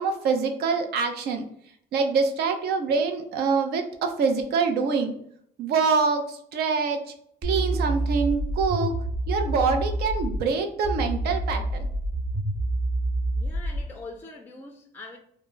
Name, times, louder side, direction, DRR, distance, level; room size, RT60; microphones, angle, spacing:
voice 1, 0.0-1.5 1.9-5.1 5.6-7.1 7.4-8.9 9.3-11.9, right 5 dB, 70° right, 5 dB, 0.6 m, -25 dB
sound 1, 7.4-10.4 10.8-13.9, right 1 dB, 30° right, 1.0 m, -28 dB
voice 2, 13.3-15.2, left 3 dB, 10° left, 2 dB, 0.4 m, -43 dB
2.2 x 2.1 x 3.7 m, 0.67 s
cardioid pair, 110°, 17 cm